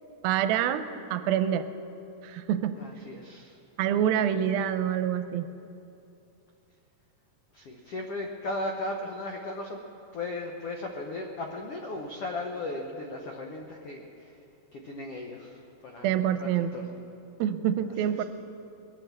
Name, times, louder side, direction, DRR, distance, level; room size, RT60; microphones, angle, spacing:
voice 1, 0.2-1.7 2.2-2.7 3.8-5.5 16.0-16.9 17.4-18.2, right 10 dB, 90° right, 10 dB, 2.5 m, -26 dB
voice 2, 2.7-3.6 7.5-9.8 10.1-14.3 14.7-16.1 16.4-17.0 18.1-18.2, left 2 dB, 85° left, 2 dB, 1.3 m, -36 dB
21.5 x 9.1 x 7.4 m, 2.8 s
omnidirectional pair, 4.2 m